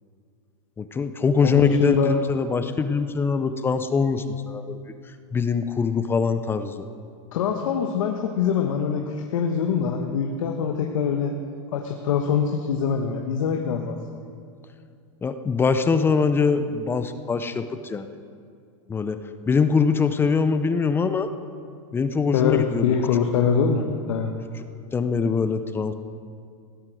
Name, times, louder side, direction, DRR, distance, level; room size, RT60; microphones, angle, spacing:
voice 1, 0.8-4.8 5.3-6.9 15.2-18.2 18.9-19.2 19.5-21.3 21.9-23.0 24.9-25.9, left 5 dB, 15° left, 10 dB, 0.6 m, -23 dB
voice 2, 1.4-2.2 7.3-11.3 11.7-13.9 22.3-24.3, left 6 dB, 80° left, 3 dB, 1.3 m, -23 dB
17.0 x 11.0 x 6.3 m, 2.3 s
supercardioid pair, 145°, 17 cm